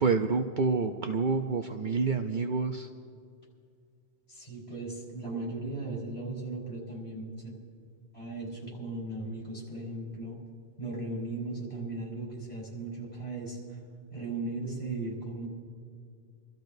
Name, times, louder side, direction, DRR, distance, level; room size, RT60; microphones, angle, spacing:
voice 1, 0.0-2.9, right 4 dB, 55° right, 4 dB, 0.7 m, -28 dB
voice 2, 4.3-7.5 8.1-10.4 10.8-13.8 14.1-15.5, right 2 dB, 40° left, -4 dB, 5.3 m, -37 dB
29.0 x 13.5 x 2.7 m, 2.1 s
omnidirectional pair, 1.1 m